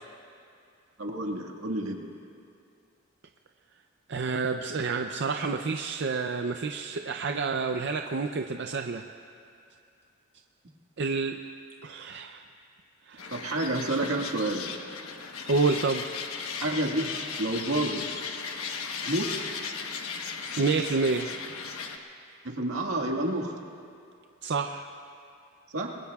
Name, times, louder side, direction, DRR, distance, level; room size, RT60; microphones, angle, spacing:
voice 1, 1.0-2.0 13.3-14.7 16.6-17.1 17.4-18.1 19.0-19.3 22.4-23.6 25.7-25.9, right 1 dB, 80° right, 1 dB, 1.7 m, -29 dB
voice 2, 4.1-9.1 11.0-11.4 11.8-12.4 13.1-13.4 15.5-16.0 20.6-21.3 24.4-24.9, right 4 dB, 55° right, 4 dB, 0.5 m, -28 dB
sound 1, 13.2-22.0, left 5 dB, 80° left, 1.1 m, -36 dB
27.5 x 21.5 x 2.4 m, 2.5 s
head